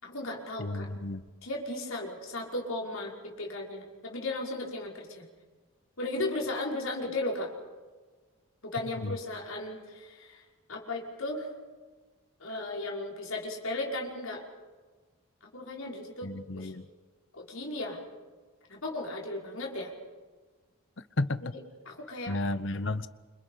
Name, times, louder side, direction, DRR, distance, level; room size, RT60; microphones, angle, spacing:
voice 1, 0.0-0.9 1.4-5.3 6.0-7.5 8.6-10.4 10.7-11.5 12.4-14.4 15.4-16.7 17.3-18.0 18.7-19.9 21.4-21.6 21.8-22.4, left 2 dB, 75° left, -1 dB, 5.6 m, -36 dB
voice 2, 0.6-1.2 9.0-9.1 16.2-16.8 21.2-21.4 22.3-23.1, left 2 dB, 60° left, 14 dB, 1.0 m, -32 dB
28.0 x 26.5 x 5.8 m, 1.4 s
head